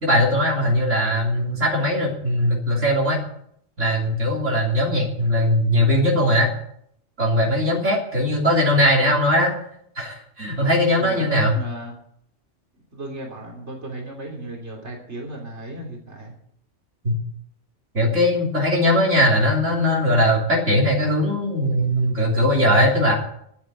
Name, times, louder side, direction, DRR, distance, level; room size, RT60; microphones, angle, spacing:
voice 1, 0.0-3.2 3.8-6.5 7.2-9.5 10.0-11.6 17.0-17.2 17.9-23.1, equal, 80° right, -2 dB, 3.6 m, -20 dB
voice 2, 11.0-11.9 12.7-16.3, right 1 dB, 65° right, 0 dB, 3.5 m, -36 dB
11.5 x 9.4 x 9.1 m, 0.69 s
omnidirectional pair, 1.2 m